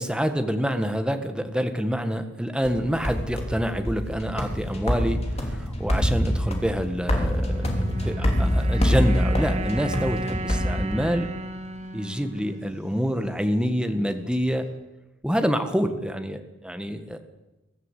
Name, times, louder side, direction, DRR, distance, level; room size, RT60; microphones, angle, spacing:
voice 1, 0.0-11.3 11.9-14.7 15.2-17.2, equal, 5° right, 7 dB, 1.7 m, -27 dB
sound 1, 2.6-11.4, equal, 35° left, 3.4 m, -26 dB
sound 2, 7.4-13.8, right 1 dB, 35° right, 1.9 m, -35 dB
22.0 x 14.5 x 8.3 m, 1.0 s
head